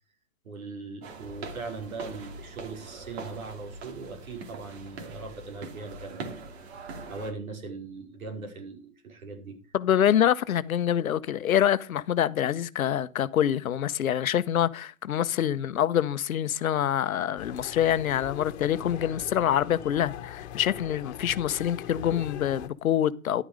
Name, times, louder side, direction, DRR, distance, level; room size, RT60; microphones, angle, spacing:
voice 1, 0.4-6.4 7.1-9.6, right 4 dB, 85° right, 5.1 m, -40 dB
sound 1, 1.0-7.3, right 3 dB, 50° right, 2.8 m, -42 dB
voice 2, 9.7-23.4, left 10 dB, 80° left, 1.0 m, -26 dB
sound 2, 17.4-22.7, left 10 dB, 50° left, 1.5 m, -41 dB
11.0 x 9.1 x 5.0 m
hypercardioid pair, 145°, 41 cm